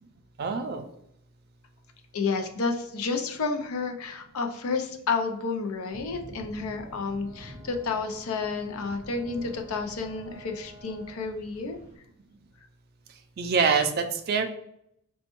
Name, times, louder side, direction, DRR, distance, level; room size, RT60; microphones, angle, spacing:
voice 1, 0.4-0.8 13.4-14.4, right 5 dB, 45° right, 6 dB, 0.4 m, -25 dB
voice 2, 2.1-11.8, left 4 dB, 80° left, 5 dB, 0.5 m, -30 dB
sound 1, 5.9-12.0, equal, 45° left, 1.2 m, -48 dB
Brass instrument, 6.8-11.3, right 1 dB, 10° right, 0.8 m, -52 dB
4.1 x 2.2 x 2.9 m, 0.74 s
head